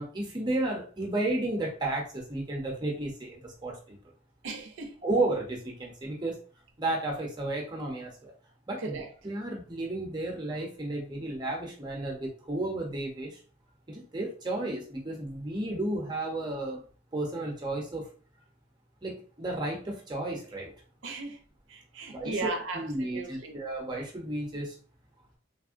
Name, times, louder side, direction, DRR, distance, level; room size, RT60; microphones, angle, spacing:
voice 1, 0.0-4.0 5.0-6.4 6.8-8.3 8.7-9.0 9.2-13.3 13.9-16.8 17.1-18.0 19.0-20.7 22.1-24.7, right 2 dB, 20° right, 0.6 m, -33 dB
voice 2, 4.4-4.9 8.8-9.1 21.0-21.4 21.7-23.6, right 3 dB, 75° right, 0.5 m, -36 dB
3.5 x 2.1 x 2.4 m
head